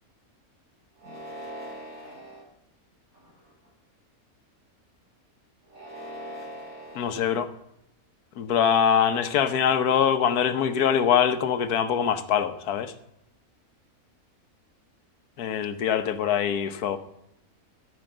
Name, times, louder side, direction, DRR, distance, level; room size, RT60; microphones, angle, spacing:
sound 1, 1.0-2.4 3.1-3.7 5.6-7.2, equal, 65° right, 4.0 m, -41 dB
voice 1, 6.9-7.5 8.4-12.9 15.4-17.0, left 8 dB, 90° left, 11 dB, 1.4 m, -23 dB
14.0 x 5.4 x 7.7 m, 0.81 s
omnidirectional pair, 1.6 m